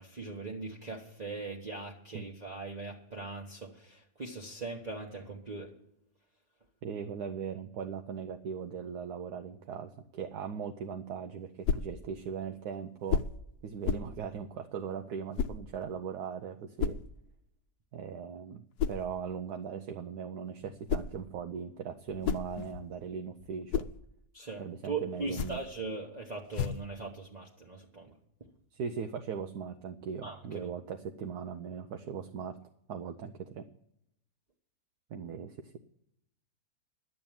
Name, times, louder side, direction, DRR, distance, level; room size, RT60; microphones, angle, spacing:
voice 1, 0.0-5.7 24.3-28.1 30.2-30.7, right 3 dB, 30° right, -1 dB, 1.1 m, -40 dB
voice 2, 6.8-13.2 13.6-17.0 17.9-23.9 24.6-25.6 28.7-32.6 32.9-33.6 35.1-35.7, right 7 dB, 75° right, 6 dB, 1.3 m, -39 dB
sound 1, 11.6-12.0 13.1-13.4 13.8-14.2 15.4-15.6 16.8-17.1 18.8-19.1 20.6-21.2 22.0-23.0 23.4-24.0 25.2-25.7 26.5-26.9, left 7 dB, 80° left, 1.2 m, -32 dB
11.5 x 7.7 x 8.8 m, 0.78 s
omnidirectional pair, 1.7 m